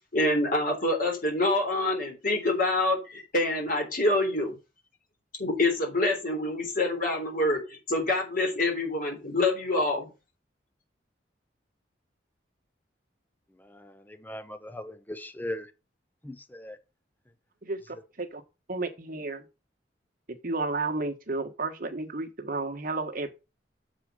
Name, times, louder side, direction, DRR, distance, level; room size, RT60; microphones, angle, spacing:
voice 1, 0.1-4.5 5.4-7.6 7.9-10.1, left 2 dB, 50° left, 3.5 m, -26 dB
voice 2, 13.6-15.7 16.2-16.8, left 1 dB, 10° left, 0.8 m, -39 dB
voice 3, 17.6-18.4 18.7-19.4 20.4-23.3, right 3 dB, 50° right, 1.5 m, -32 dB
7.4 x 4.8 x 6.5 m
head